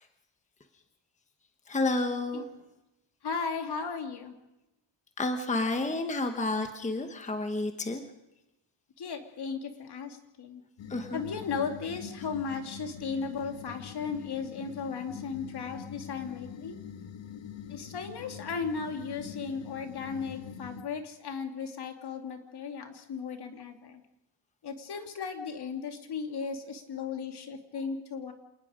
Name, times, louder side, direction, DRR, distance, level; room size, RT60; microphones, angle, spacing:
voice 1, 1.7-2.4 5.2-8.0 10.9-11.2, left 2 dB, 15° left, 6 dB, 1.2 m, -30 dB
voice 2, 3.2-4.3 9.0-10.6 11.1-16.8 17.7-24.0 24.6-28.3, left 5 dB, 60° left, 5 dB, 2.8 m, -36 dB
sound 1, 10.8-20.8, left 7 dB, 80° left, 1.8 m, -44 dB
27.5 x 19.5 x 5.1 m, 0.95 s
wide cardioid pair, 175°, 44 cm